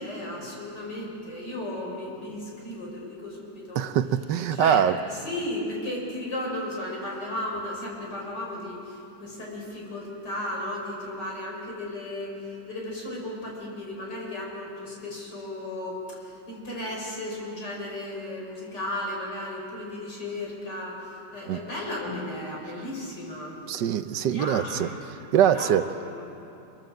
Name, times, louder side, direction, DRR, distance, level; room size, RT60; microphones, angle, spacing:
voice 1, 0.0-3.8 4.5-23.6 24.2-25.0 25.4-26.2, left 1 dB, 60° left, -2 dB, 6.3 m, -35 dB
voice 2, 3.8-5.0 21.5-21.6 23.7-24.9 25.3-25.9, right 9 dB, 70° right, 11 dB, 1.4 m, -23 dB
27.0 x 22.5 x 7.8 m, 2.8 s
omnidirectional pair, 2.0 m